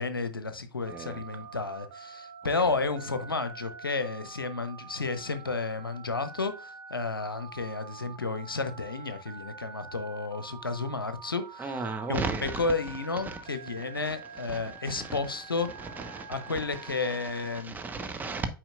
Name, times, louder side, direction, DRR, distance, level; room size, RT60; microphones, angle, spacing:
voice 1, 0.0-11.8 12.1-15.7 16.3-17.8, left 3 dB, 85° left, 0.8 m, -32 dB
voice 2, 0.9-1.2 11.6-12.6 13.3-13.4 14.0-14.1 14.5-15.2 15.8-16.5 17.5-18.5, right 4 dB, 15° right, 1.1 m, -35 dB
Telephone, 0.9-17.6, right 5 dB, 50° right, 1.6 m, -46 dB
8.8 x 4.7 x 2.4 m
figure-of-eight pair, 95°, 12 cm